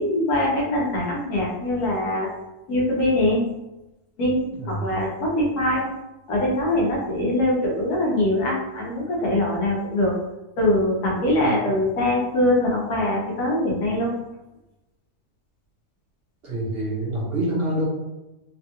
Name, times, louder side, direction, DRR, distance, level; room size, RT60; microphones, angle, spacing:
voice 1, 0.0-2.3 2.7-3.4 4.2-5.8 6.3-10.2 10.6-14.1, left 1 dB, 85° left, -3 dB, 1.4 m, -22 dB
voice 2, 4.6-4.9 11.4-11.6 16.4-17.9, right 1 dB, 50° right, -5 dB, 0.8 m, -27 dB
3.4 x 2.3 x 2.8 m, 0.98 s
omnidirectional pair, 1.6 m